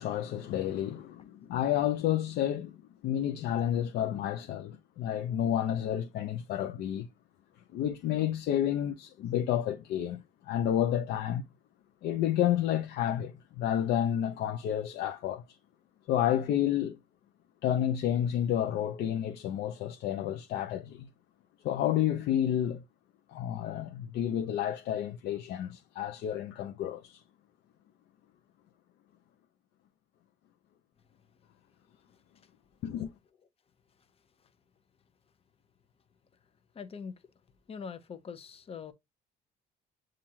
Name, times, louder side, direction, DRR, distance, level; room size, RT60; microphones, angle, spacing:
voice 1, 0.0-2.8 3.0-7.1 7.7-11.5 12.0-15.4 16.1-17.0 17.6-21.1 21.6-22.8 23.3-27.2 32.8-33.1, left 11 dB, 75° left, 0.6 m, -30 dB
voice 2, 36.7-37.1 37.7-38.9, left 6 dB, 35° left, 0.8 m, -42 dB
7.2 x 2.5 x 2.8 m
cardioid pair, 110°, 17 cm